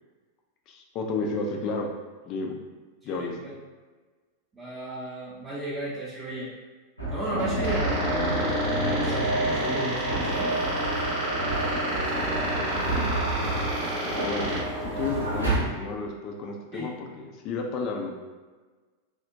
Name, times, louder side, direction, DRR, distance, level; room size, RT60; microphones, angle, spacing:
voice 1, 0.7-1.9 2.3-2.6 3.0-3.4 12.7-13.3 14.0-14.5 14.8-18.1, left 3 dB, 40° left, 1 dB, 0.4 m, -32 dB
voice 2, 3.0-3.5 4.5-6.5 7.1-10.5 16.7-16.9, right 1 dB, 15° right, -9 dB, 0.6 m, -34 dB
sound 1, 7.0-15.6, right 1 dB, 85° right, 0.7 m, -29 dB
sound 2, 7.6-14.6, right 1 dB, 50° right, 0.7 m, -31 dB
sound 3, 9.4-15.5, right 1 dB, 85° left, 1.4 m, -40 dB
3.4 x 2.1 x 2.6 m, 1.4 s
figure-of-eight pair, 90°, 0 cm